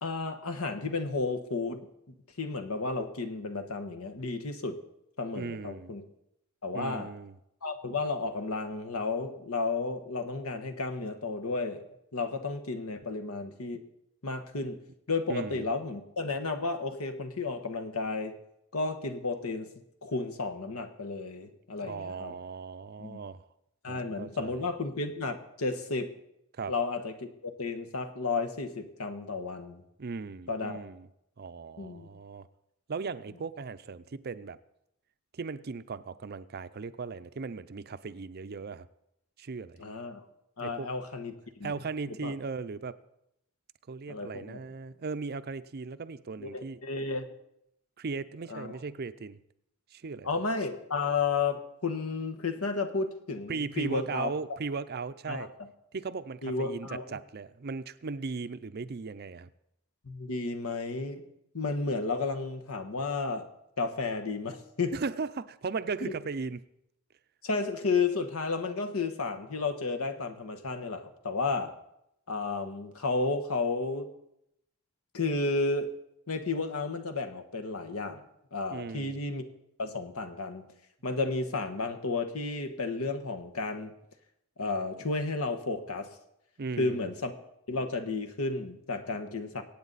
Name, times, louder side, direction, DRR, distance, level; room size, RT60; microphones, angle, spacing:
voice 1, 0.0-1.9 2.4-4.8 5.2-6.0 6.6-7.1 7.6-11.8 12.1-13.8 14.2-14.8 15.1-18.3 18.7-19.7 20.0-22.3 23.0-23.2 23.8-26.1 26.7-29.8 30.5-30.9 31.8-32.1 39.8-40.2 40.6-41.7 42.2-42.3 44.1-44.6 46.4-47.3 48.5-48.8 50.2-54.3 55.3-55.5 56.4-57.2 60.0-61.2 61.5-63.5 63.8-64.9 66.0-66.2 67.4-71.7 72.3-74.1 75.1-75.9 76.3-78.2 78.5-79.4 79.8-80.6 81.0-83.9 84.6-86.1 86.8-87.3 87.7-89.6, left 3 dB, 75° left, 6 dB, 1.3 m, -32 dB
voice 2, 5.3-5.9 6.7-7.3 15.3-15.6 21.8-23.4 23.9-24.6 26.5-26.7 30.0-31.1 31.4-32.5 32.9-34.6 35.3-38.9 39.4-39.8 40.6-40.9 41.6-43.0 43.9-46.8 48.0-49.4 49.9-50.3 53.5-55.5 55.9-59.5 64.9-66.6 78.7-79.2 86.6-87.1, right 4 dB, 45° right, 14 dB, 0.5 m, -37 dB
23.5 x 8.8 x 4.1 m, 0.81 s
head